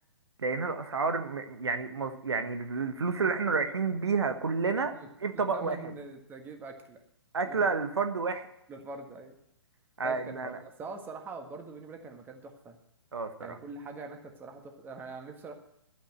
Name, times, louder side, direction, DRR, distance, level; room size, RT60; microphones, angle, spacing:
voice 1, 0.4-4.9 5.2-5.8 7.3-8.5 10.0-10.6 13.1-13.6, right 4 dB, 70° right, 8 dB, 1.2 m, -30 dB
voice 2, 5.3-7.0 7.4-7.6 8.7-9.4 10.0-12.7 13.4-15.5, right 3 dB, 15° right, 4 dB, 1.6 m, -43 dB
12.0 x 9.2 x 7.6 m, 0.81 s
figure-of-eight pair, 125°, 14 cm